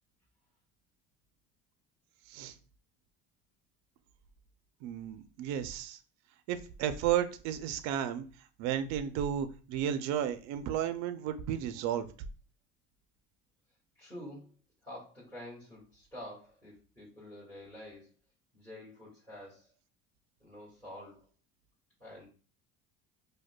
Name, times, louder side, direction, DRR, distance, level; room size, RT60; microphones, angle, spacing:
voice 1, 4.8-6.0 6.5-8.2 8.6-12.1, right 10 dB, 65° right, 0.5 m, -33 dB
voice 2, 13.9-14.5 14.8-18.1 18.5-19.7 20.4-21.2 22.0-22.2, left 1 dB, 5° left, 1.7 m, -48 dB
4.8 x 2.3 x 2.2 m
cardioid pair, 125°, 29 cm